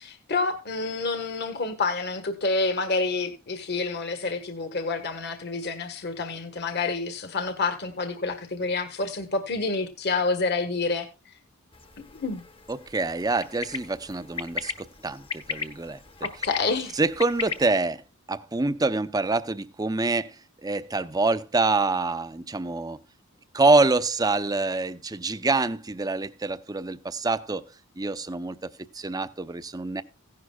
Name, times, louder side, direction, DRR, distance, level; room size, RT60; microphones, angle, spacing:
voice 1, 0.0-11.1 12.0-12.4 16.2-17.0, left 3 dB, 50° left, 1.5 m, -28 dB
sound 1, 11.7-17.7, left 5 dB, 25° left, 1.1 m, -37 dB
voice 2, 12.7-16.0 16.9-18.0 18.3-20.4 20.6-23.0 23.5-27.6 28.0-30.0, right 3 dB, 20° right, 0.6 m, -26 dB
16.5 x 11.0 x 2.3 m
head